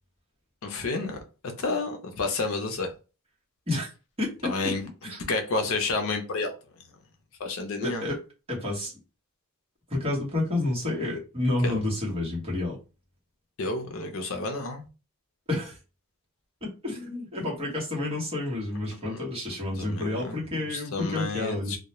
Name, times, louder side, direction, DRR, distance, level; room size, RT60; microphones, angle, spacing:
voice 1, 0.6-1.2 1.6-2.9 4.4-4.8 5.3-6.5 7.4-8.0 11.6-11.8 13.6-14.8 19.1-19.2 19.8-21.8, left 3 dB, 65° left, 0.5 m, -30 dB
voice 2, 4.2-4.7 5.0-5.2 7.8-8.2 8.5-9.0 9.9-12.8 15.5-15.8 16.6-21.8, left 2 dB, 25° right, 1.0 m, -30 dB
2.3 x 2.1 x 2.9 m
head